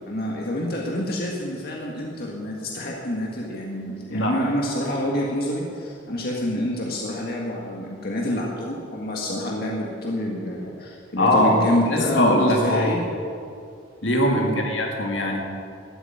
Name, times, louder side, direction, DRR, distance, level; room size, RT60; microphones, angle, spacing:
voice 1, 0.0-13.0 14.3-14.6, left 1 dB, 55° left, -2 dB, 1.8 m, -27 dB
voice 2, 11.2-12.9 14.0-15.4, left 1 dB, 75° left, 0 dB, 2.4 m, -21 dB
13.5 x 8.1 x 9.1 m, 2.4 s
head